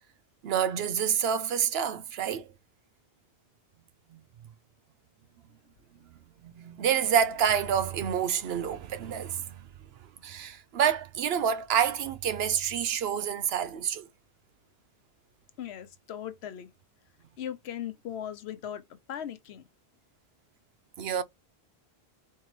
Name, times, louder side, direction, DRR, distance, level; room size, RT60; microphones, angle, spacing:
voice 1, 0.4-2.5 4.1-4.2 6.4-9.6 10.2-14.1 21.0-21.2, right 8 dB, 75° right, 0.9 m, -28 dB
voice 2, 15.6-16.7 17.4-19.6, left 9 dB, 80° left, 0.9 m, -38 dB
4.5 x 3.8 x 3.1 m
omnidirectional pair, 1.1 m